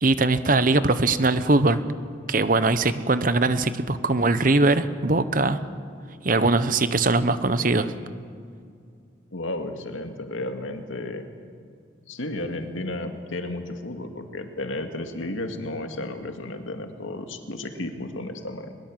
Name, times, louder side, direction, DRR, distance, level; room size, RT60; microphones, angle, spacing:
voice 1, 0.0-1.8 2.3-5.6 6.2-7.9, right 2 dB, 45° right, 12 dB, 1.0 m, -21 dB
voice 2, 9.3-11.3 12.1-18.7, left 2 dB, 85° left, 5 dB, 2.1 m, -33 dB
22.0 x 21.0 x 7.6 m, 2.3 s
head